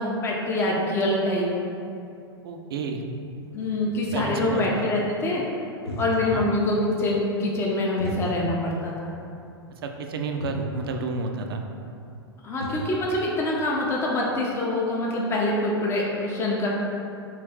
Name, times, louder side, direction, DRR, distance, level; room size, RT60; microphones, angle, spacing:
voice 1, 0.0-1.5 3.5-5.4 6.0-9.1 12.4-16.7, left 1 dB, 20° left, -3 dB, 0.5 m, -25 dB
voice 2, 2.4-3.0 4.1-4.6 6.2-6.5 9.7-11.6, right 3 dB, 65° right, 4 dB, 0.4 m, -31 dB
sound 1, 3.2-4.6 5.7-6.5 6.8-6.9 8.0-8.8 9.1-9.2 10.1-10.2 10.4-10.7 12.0-12.1 12.3-13.0, right 1 dB, 90° left, 0.5 m, -36 dB
3.2 x 2.5 x 3.5 m, 2.6 s
figure-of-eight pair, 100°, 13 cm